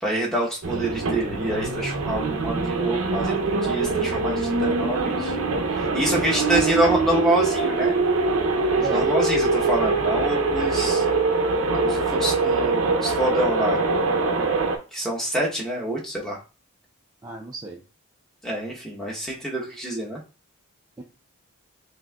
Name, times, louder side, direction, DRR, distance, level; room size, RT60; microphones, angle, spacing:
voice 1, 0.0-5.4 5.7-7.9 8.8-11.0 11.8-13.8 14.9-16.4 18.4-20.2, right 1 dB, ahead, -4 dB, 0.9 m, -27 dB
sound 1, 0.6-14.8, right 3 dB, 70° right, 0.6 m, -23 dB
voice 2, 6.1-6.6 8.8-9.0 17.2-17.8 21.0-21.1, right 3 dB, 15° right, -1 dB, 0.4 m, -34 dB
5.9 x 2.7 x 2.3 m, 0.34 s
head